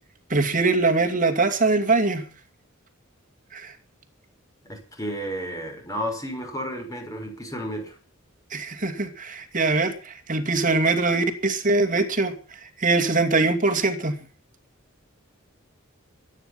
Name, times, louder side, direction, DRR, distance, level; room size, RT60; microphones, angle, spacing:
voice 1, 0.3-2.2 3.5-3.7 8.5-12.3 12.6-14.2, right 3 dB, 40° right, 6 dB, 2.6 m, -22 dB
voice 2, 4.6-8.0, equal, 15° left, 3 dB, 5.9 m, -32 dB
24.0 x 10.0 x 5.7 m, 0.37 s
head